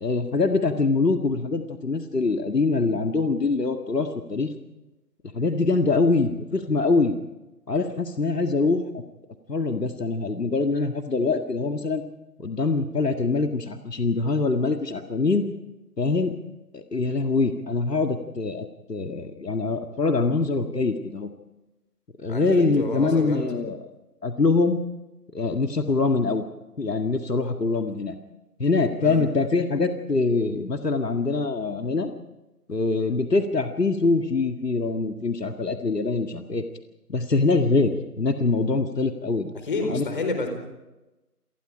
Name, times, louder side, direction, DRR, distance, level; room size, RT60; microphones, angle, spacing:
voice 1, 0.0-4.5 5.3-7.1 7.7-9.0 9.5-12.0 12.4-15.5 16.0-16.3 16.7-21.3 22.2-23.8 24.2-24.8 25.3-26.4 26.8-28.2 28.6-32.1 32.7-36.6 37.1-39.5 39.9-40.1, left 3 dB, 80° left, 5 dB, 2.0 m, -24 dB
voice 2, 22.3-23.5 29.0-29.2 39.6-40.5, left 3 dB, 30° left, 5 dB, 4.5 m, -29 dB
28.5 x 19.0 x 5.1 m, 1.0 s
figure-of-eight pair, 165°, 47 cm